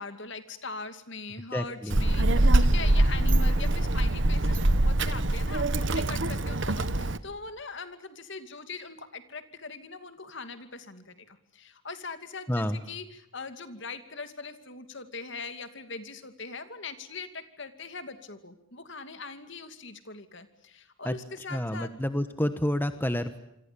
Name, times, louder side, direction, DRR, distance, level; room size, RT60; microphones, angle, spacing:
voice 1, 0.0-21.9, left 4 dB, 55° left, 9 dB, 2.6 m, -41 dB
voice 2, 1.5-2.0 12.5-12.8 21.0-21.2 21.5-23.4, left 1 dB, 10° left, 9 dB, 1.1 m, -29 dB
Child speech kid speaking, 1.9-7.2, right 1 dB, 55° right, 1.3 m, -23 dB
27.5 x 25.0 x 6.9 m, 0.82 s
head